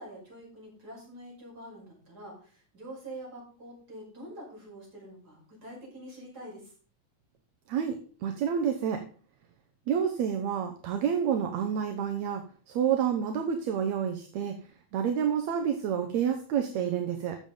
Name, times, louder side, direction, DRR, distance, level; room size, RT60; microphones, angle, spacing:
voice 1, 0.0-6.7, right 1 dB, 30° right, -3 dB, 6.0 m, -46 dB
voice 2, 8.2-9.0 9.9-12.4 12.7-14.5 14.9-17.4, right 8 dB, 75° right, 5 dB, 2.2 m, -28 dB
14.0 x 7.0 x 3.9 m, 0.41 s
omnidirectional pair, 3.3 m